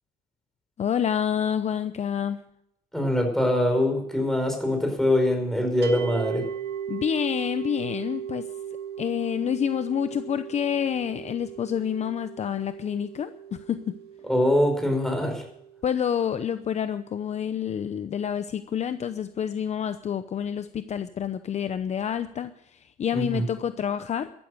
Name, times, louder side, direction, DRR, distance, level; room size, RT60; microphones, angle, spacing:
voice 1, 0.8-2.4 6.9-8.5 9.0-14.0 15.8-24.3, left 8 dB, 40° left, 11 dB, 0.8 m, -28 dB
voice 2, 2.9-6.5 14.2-15.4 23.1-23.5, left 1 dB, ahead, 4 dB, 5.0 m, -23 dB
sound 1, 5.8-17.0, right 9 dB, 75° right, 2.0 m, -38 dB
13.5 x 12.5 x 6.5 m, 0.76 s
cardioid pair, 110°, 17 cm